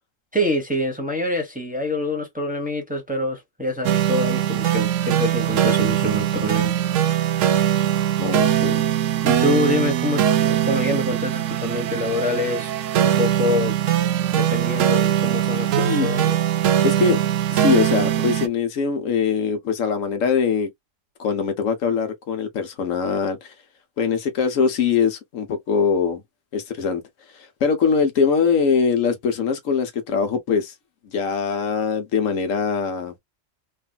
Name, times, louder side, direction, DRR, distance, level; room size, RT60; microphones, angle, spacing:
voice 1, 0.3-6.7 9.2-13.7 14.3-16.4, left 1 dB, 5° right, 0.9 m, -26 dB
sound 1, 3.8-18.5, right 11 dB, 80° right, 0.9 m, -21 dB
voice 2, 8.2-8.8 15.8-16.1 16.8-17.2 17.5-20.7 21.2-23.5 24.0-26.2 26.5-27.0 27.3-30.7 31.0-33.1, left 6 dB, 90° left, 1.3 m, -22 dB
3.3 x 2.6 x 2.2 m
omnidirectional pair, 1.3 m